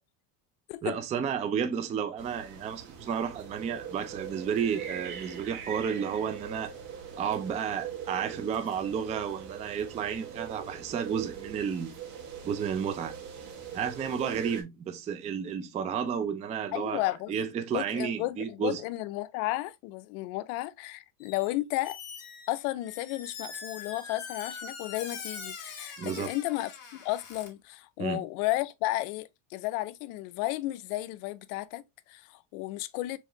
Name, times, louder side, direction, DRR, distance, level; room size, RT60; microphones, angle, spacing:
voice 1, 0.8-6.7 7.2-11.9 12.4-13.1 13.7-17.0 17.3-18.8 26.0-26.3 28.0-28.2, right 7 dB, 15° right, 0.3 m, -32 dB
sound 1, 2.2-14.6, right 7 dB, 75° right, 2.2 m, -42 dB
voice 2, 16.7-17.3 17.7-22.0 22.5-26.7 27.0-33.2, left 17 dB, 75° left, 0.7 m, -33 dB
Squeak, 21.2-21.5 21.8-27.5, left 5 dB, 35° left, 1.9 m, -43 dB
4.8 x 3.5 x 2.9 m
cardioid pair, 145°, 45 cm